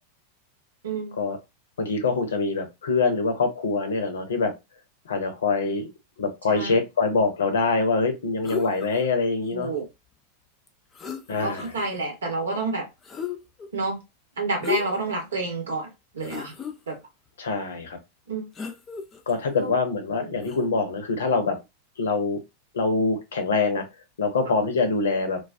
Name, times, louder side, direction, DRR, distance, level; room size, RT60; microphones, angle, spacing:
voice 1, 0.8-1.1 6.5-6.8 9.5-9.9 11.4-12.9 13.7-14.0 14.4-16.5 16.9-17.0 18.3-18.5 19.6-19.7 20.2-20.3, right 3 dB, 70° right, 0.9 m, -29 dB
voice 2, 1.8-4.5 5.1-5.9 6.2-9.7 11.3-11.6 17.4-18.0 19.3-21.6 22.0-22.4 22.7-23.9 24.2-25.4, left 4 dB, 65° left, 0.6 m, -24 dB
sound 1, 8.4-9.1 10.7-10.8 10.9-11.9 13.0-13.7 14.6-15.1 15.6-15.7 16.2-16.7 18.5-19.4 20.4-20.6, left 6 dB, 20° left, 0.5 m, -34 dB
2.3 x 2.2 x 2.4 m
figure-of-eight pair, 90°, 0 cm